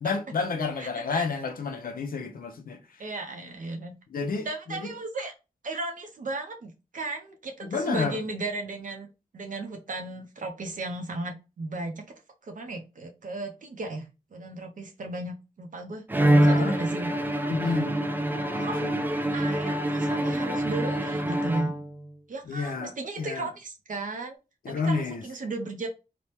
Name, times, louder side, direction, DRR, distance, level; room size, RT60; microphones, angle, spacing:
voice 1, 0.0-2.8 4.1-4.9 7.6-8.2 16.4-16.7 17.5-18.0 18.3-19.0 22.5-22.9 23.2-23.5 24.6-25.2, left 4 dB, 80° left, 0.5 m, -30 dB
voice 2, 0.8-1.3 3.0-3.9 4.4-5.3 5.6-9.1 9.3-12.0 12.4-17.4 18.6-18.9 19.3-21.7 22.3-24.4 24.7-25.9, right 2 dB, 65° right, 0.5 m, -35 dB
Bowed string instrument, 16.1-22.1, right 1 dB, 15° right, 0.3 m, -25 dB
3.2 x 2.0 x 2.8 m
wide cardioid pair, 120°, 15 cm